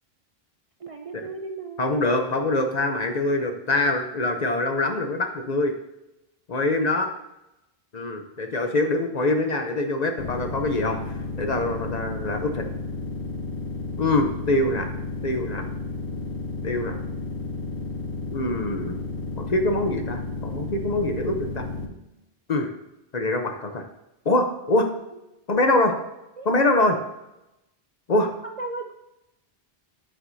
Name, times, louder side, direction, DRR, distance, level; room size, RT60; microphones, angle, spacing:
voice 1, 0.8-2.3 15.2-15.3 25.6-25.8 26.4-26.5 28.4-28.9, right 3 dB, 45° right, 4 dB, 0.5 m, -36 dB
voice 2, 1.8-5.7 6.5-7.1 7.9-11.0 11.4-12.6 14.0-14.9 15.2-15.7 16.6-17.0 18.3-19.0 19.4-21.7 22.5-22.7 23.1-23.8 24.2-24.9 25.5-26.0 26.4-27.0 28.1-28.3, left 2 dB, 45° left, 6 dB, 0.8 m, -24 dB
sound 1, 10.2-21.8, left 3 dB, 65° left, 1.1 m, -32 dB
9.8 x 7.8 x 2.7 m, 0.93 s
omnidirectional pair, 1.1 m